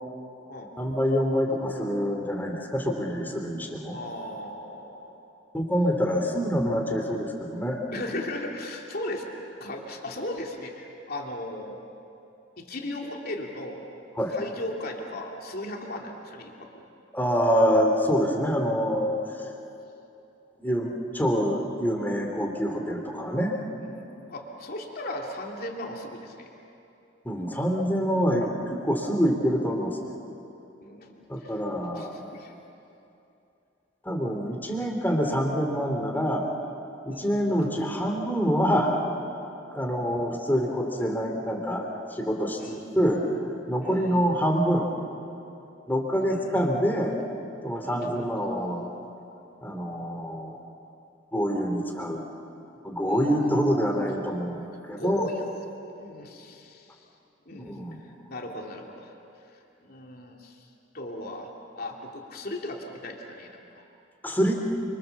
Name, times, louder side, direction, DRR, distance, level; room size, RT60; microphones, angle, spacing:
voice 1, 0.8-4.0 5.5-7.8 14.2-14.3 17.1-19.1 20.6-23.6 27.2-30.0 31.3-32.1 34.0-36.4 37.0-39.0 39.7-43.2 43.7-44.9 45.9-47.2 47.6-48.9 49.6-50.6 51.3-52.2 52.8-55.3 57.6-58.0 64.2-64.5, equal, 10° left, 1 dB, 3.2 m, -26 dB
voice 2, 3.9-5.2 6.2-6.3 7.9-9.3 9.6-11.8 12.6-13.9 14.3-16.9 19.5-19.6 23.8-26.5 30.8-31.6 31.9-32.5 37.1-37.3 39.9-40.1 42.6-42.8 43.8-44.3 46.2-46.6 47.8-48.3 53.0-53.4 54.6-55.5 56.0-57.1 57.5-59.1 59.5-60.7 60.9-61.5 61.7-63.6, left 1 dB, 55° left, 0 dB, 2.8 m, -37 dB
29.5 x 24.5 x 7.2 m, 2.8 s
head